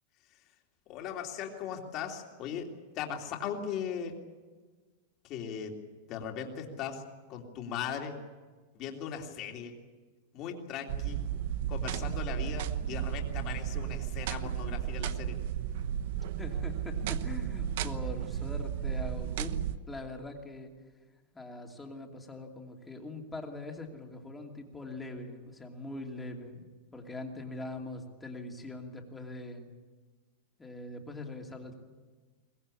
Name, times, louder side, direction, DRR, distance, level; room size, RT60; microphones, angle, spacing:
voice 1, 0.9-2.7 2.9-4.2 5.2-5.8 6.1-7.0 7.3-8.2 8.7-9.8 10.3-11.2 11.7-15.4, left 7 dB, 30° left, 2 dB, 3.1 m, -38 dB
sound 1, 10.9-19.8, right 10 dB, 55° right, 1.0 m, -34 dB
voice 2, 16.4-20.7 21.3-29.7 30.6-31.7, left 2 dB, 5° left, 2 dB, 2.6 m, -42 dB
23.0 x 20.5 x 8.5 m, 1.3 s
supercardioid pair, 170°, 0 cm